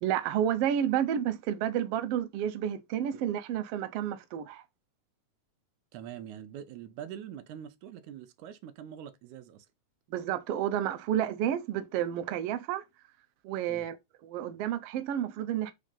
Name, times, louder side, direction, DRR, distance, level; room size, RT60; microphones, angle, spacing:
voice 1, 0.0-4.6 10.1-12.8 13.4-14.0 14.2-15.7, right 10 dB, 70° right, 1.5 m, -30 dB
voice 2, 5.9-9.7 13.7-13.9, right 9 dB, 90° right, 2.2 m, -44 dB
5.0 x 3.7 x 5.4 m
omnidirectional pair, 3.4 m